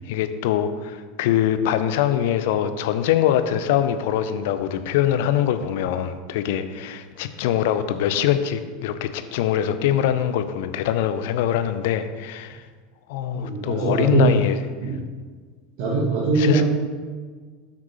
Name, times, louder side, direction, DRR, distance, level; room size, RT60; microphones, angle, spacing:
voice 1, 0.0-12.6 13.1-14.6 16.4-16.6, left 10 dB, 55° left, 10 dB, 0.7 m, -23 dB
voice 2, 13.3-14.4 14.8-15.0 15.8-16.6, right 4 dB, 50° right, -4 dB, 1.6 m, -21 dB
8.6 x 6.1 x 5.6 m, 1.5 s
figure-of-eight pair, 80°, 0 cm